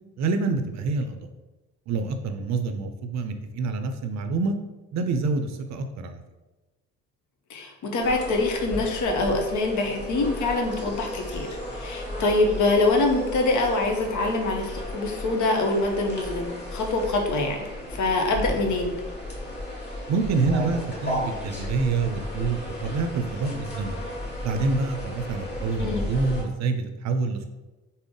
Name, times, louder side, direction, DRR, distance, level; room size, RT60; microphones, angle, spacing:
voice 1, 0.2-1.2 1.9-4.6 4.9-6.2 20.1-24.0 24.4-27.5, right 4 dB, 50° right, 7 dB, 0.5 m, -27 dB
voice 2, 7.5-19.0 25.8-26.1, left 2 dB, 55° left, 3 dB, 0.8 m, -25 dB
sound 1, 8.0-26.4, left 1 dB, 30° left, 1.2 m, -34 dB
3.6 x 2.1 x 3.7 m, 1.1 s
hypercardioid pair, 55°, 36 cm